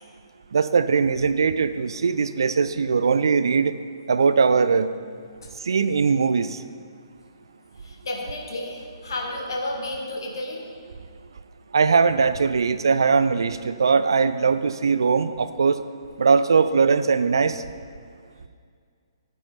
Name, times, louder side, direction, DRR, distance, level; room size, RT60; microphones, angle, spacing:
voice 1, 0.5-3.7 4.1-4.9 5.6-6.6 11.7-15.8 16.2-17.6, right 5 dB, 60° right, 13 dB, 0.4 m, -20 dB
voice 2, 7.8-10.6, left 1 dB, 60° left, 0 dB, 1.9 m, -32 dB
12.0 x 9.2 x 3.4 m, 2.1 s
figure-of-eight pair, 125°, 3 cm